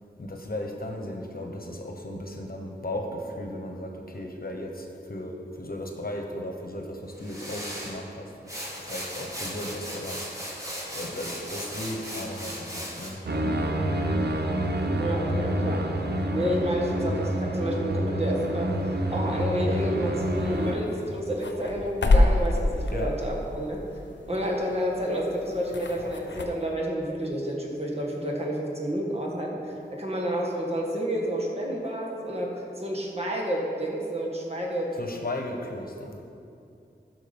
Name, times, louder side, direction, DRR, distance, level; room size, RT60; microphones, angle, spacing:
voice 1, 0.2-8.3 8.8-13.7 22.9-23.1 35.0-36.2, left 1 dB, 55° left, 2 dB, 1.2 m, -36 dB
sound 1, 7.1-8.0 8.5-13.1, equal, 20° right, 2.5 m, -37 dB
sound 2, 13.3-20.7, right 1 dB, 65° right, 1.0 m, -27 dB
voice 2, 15.0-15.9 16.3-18.7 19.1-23.8 24.3-35.0, equal, 35° right, -2 dB, 1.9 m, -30 dB
sound 3, 20.2-26.5, left 2 dB, 85° left, 0.8 m, -28 dB
11.5 x 6.1 x 5.4 m, 2.5 s
wide cardioid pair, 55°, 18 cm